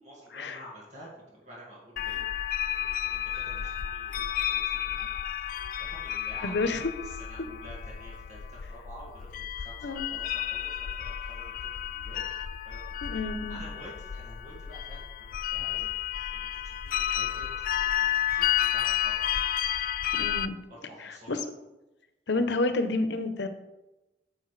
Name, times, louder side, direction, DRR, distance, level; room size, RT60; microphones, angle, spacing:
voice 1, 0.0-2.3 2.6-5.1 5.4-6.8 7.0-10.7 11.0-12.2 12.6-12.8 13.5-19.4 20.7-21.4, right 1 dB, 40° right, -5 dB, 2.0 m, -49 dB
sound 1, 2.0-20.5, left 11 dB, 50° left, 0.3 m, -31 dB
voice 2, 6.4-6.9 9.8-10.1 13.0-13.6 20.2-20.6 21.0-21.4 22.3-23.5, left 2 dB, 80° left, 9 dB, 0.8 m, -29 dB
10.0 x 7.0 x 3.2 m, 0.99 s
head